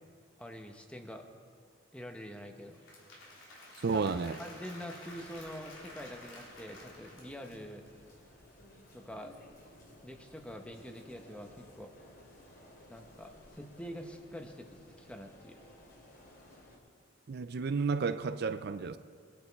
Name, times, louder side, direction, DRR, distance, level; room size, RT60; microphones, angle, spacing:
voice 1, 0.4-1.2 1.9-2.8 3.9-7.8 8.9-9.3 10.0-11.9 12.9-15.6, equal, 5° left, 0.9 m, -46 dB
Applause / Crowd, 2.5-7.9, left 1 dB, 85° left, 3.6 m, -51 dB
voice 2, 3.8-4.4 17.3-19.0, right 5 dB, 55° right, 0.4 m, -32 dB
sound 1, 5.0-16.8, left 1 dB, 50° left, 3.0 m, -57 dB
22.0 x 10.0 x 4.6 m
head